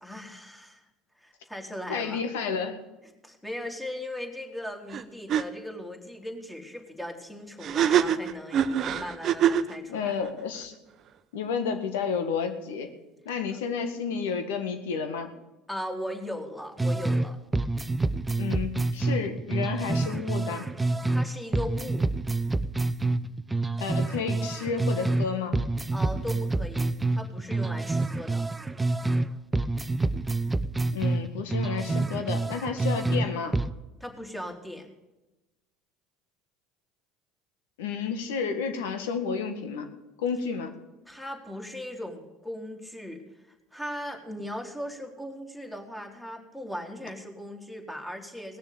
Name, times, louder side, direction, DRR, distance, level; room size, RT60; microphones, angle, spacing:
voice 1, 0.0-0.8 1.2-2.2 3.2-10.1 15.7-17.4 21.1-22.1 25.9-28.5 34.0-34.9 41.0-43.2 43.7-48.6, left 1 dB, 5° left, 2 dB, 3.1 m, -38 dB
voice 2, 1.9-2.8 9.9-10.7 11.3-12.9 13.3-15.3 18.4-20.7 23.8-25.6 30.9-33.5 37.8-39.9 40.2-40.7, left 6 dB, 80° left, 8 dB, 1.8 m, -31 dB
sound 1, 4.9-5.0 5.3-5.4 7.6-9.7, right 9 dB, 50° right, 0.8 m, -24 dB
sound 2, 16.8-17.3 17.5-21.3 21.5-25.3 25.5-29.3 29.5-33.3 33.5-33.7, right 2 dB, 15° right, 0.7 m, -27 dB
18.5 x 6.8 x 8.5 m, 1.0 s
hypercardioid pair, 75°, 0 cm